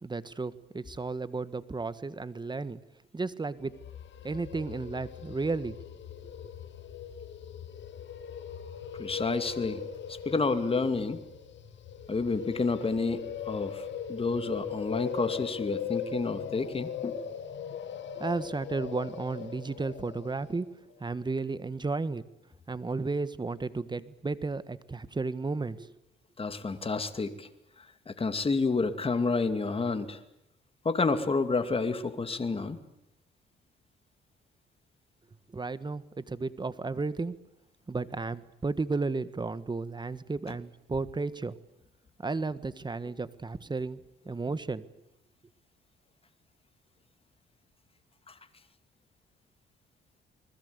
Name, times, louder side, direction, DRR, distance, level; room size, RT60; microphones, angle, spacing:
voice 1, 0.0-2.8 3.1-3.8 4.2-5.8 18.2-20.7 21.0-22.2 22.7-25.9 35.5-37.4 37.9-41.6 42.2-44.0 44.2-44.8, right 3 dB, 20° right, 15 dB, 1.5 m, -33 dB
sound 1, 3.6-20.6, left 8 dB, 65° left, 2.3 m, -40 dB
voice 2, 9.0-9.8 10.1-11.2 12.1-17.2 26.4-27.5 27.8-30.2 30.8-32.8 48.3-48.4, left 4 dB, 30° left, 9 dB, 2.5 m, -30 dB
29.5 x 21.0 x 8.2 m, 0.80 s
cardioid pair, 90°, 20 cm